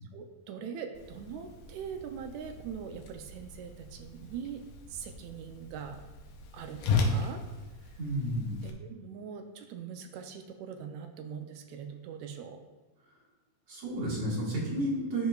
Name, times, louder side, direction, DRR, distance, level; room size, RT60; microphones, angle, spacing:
voice 1, 0.1-4.6 4.9-6.0 6.5-7.4 7.8-8.0 8.6-12.6, right 7 dB, 80° right, 5 dB, 1.8 m, -42 dB
Whoosh swoosh swish, 0.9-8.7, left 3 dB, 90° left, 2.2 m, -36 dB
voice 2, 8.0-8.6 13.7-15.3, right 1 dB, 55° right, -5 dB, 2.5 m, -31 dB
12.5 x 4.9 x 2.3 m, 1.2 s
omnidirectional pair, 3.4 m